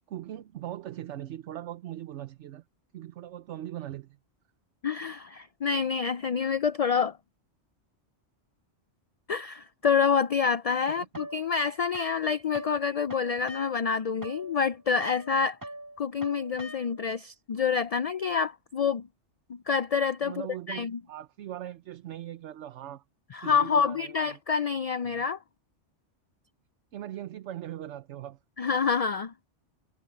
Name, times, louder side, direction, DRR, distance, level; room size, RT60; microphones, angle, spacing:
voice 1, 0.1-2.6 2.9-4.2 10.9-11.1 20.2-23.0 23.4-24.3 25.0-25.2 26.9-28.4, right 12 dB, 75° right, 1.0 m, -40 dB
voice 2, 4.8-7.2 9.3-15.6 16.0-19.1 19.5-21.0 23.3-25.4 28.6-29.3, left 6 dB, 65° left, 0.3 m, -27 dB
sound 1, 11.1-12.8 13.1-17.2, equal, 15° right, 1.7 m, -43 dB
omnidirectional pair, 1.2 m